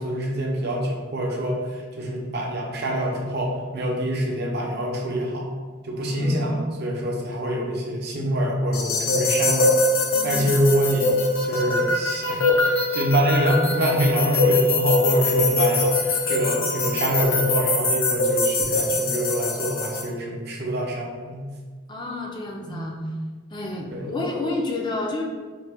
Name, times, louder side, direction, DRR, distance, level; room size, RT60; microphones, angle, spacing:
voice 1, 0.0-1.6 2.0-5.5 5.8-9.7 10.2-11.1 11.5-21.4 22.7-23.0 23.9-24.1, equal, 55° right, -1 dB, 0.6 m, -25 dB
voice 2, 6.1-6.6 10.1-10.6 21.9-22.9 23.5-25.2, left 2 dB, 20° left, -1 dB, 0.4 m, -30 dB
sound 1, 8.7-20.0, left 2 dB, 85° left, 0.6 m, -23 dB
3.9 x 2.1 x 3.3 m, 1.5 s
head